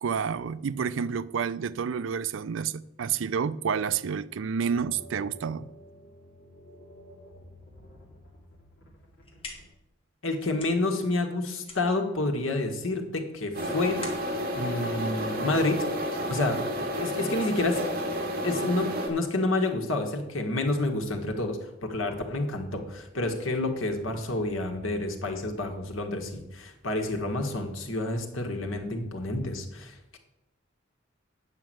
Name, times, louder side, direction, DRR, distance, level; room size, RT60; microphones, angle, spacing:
voice 1, 0.0-5.7, right 6 dB, 70° right, 0.4 m, -29 dB
sound 1, 4.6-9.7, equal, 60° left, 2.5 m, -50 dB
sound 2, 9.0-15.8, left 3 dB, 30° left, 1.9 m, -48 dB
voice 2, 10.2-14.0 14.5-15.8 16.3-16.6 16.9-17.8 18.4-30.2, left 2 dB, 90° left, 1.6 m, -29 dB
sound 3, 13.5-19.1, equal, 50° right, 2.1 m, -31 dB
9.1 x 5.9 x 7.7 m
head